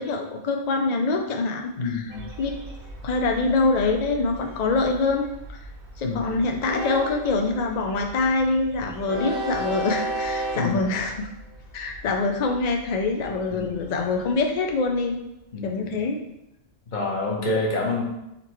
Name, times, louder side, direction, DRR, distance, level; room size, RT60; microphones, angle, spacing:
voice 1, 0.0-2.0 2.4-2.5 3.0-5.6 6.0-11.3 11.7-15.2 15.6-16.2, left 3 dB, 75° left, 2 dB, 0.3 m, -25 dB
voice 2, 1.8-2.3 6.0-6.4 10.5-10.9 13.5-14.0 15.5-15.9 16.9-18.0, left 3 dB, 40° left, -2 dB, 1.1 m, -28 dB
Train, 2.1-15.1, right 1 dB, 50° right, 0.9 m, -35 dB
4.3 x 4.2 x 3.0 m, 0.87 s
omnidirectional pair, 1.3 m